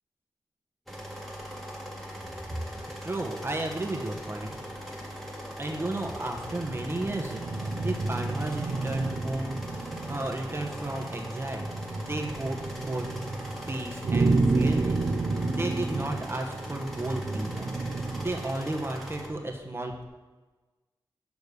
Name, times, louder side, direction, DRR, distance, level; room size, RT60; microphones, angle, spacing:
sound 1, 0.9-19.3, equal, ahead, 1.9 m, -40 dB
sound 2, 2.2-15.7, left 1 dB, 65° left, 3.3 m, -52 dB
voice 1, 3.0-4.6 5.6-11.6 12.0-13.1 13.7-15.1 15.4-20.1, right 1 dB, 25° right, 1 dB, 1.3 m, -34 dB
sound 3, 6.0-18.6, right 3 dB, 55° right, 0.5 m, -31 dB
7.0 x 6.7 x 6.7 m, 1.2 s
wide cardioid pair, 75°, 9 cm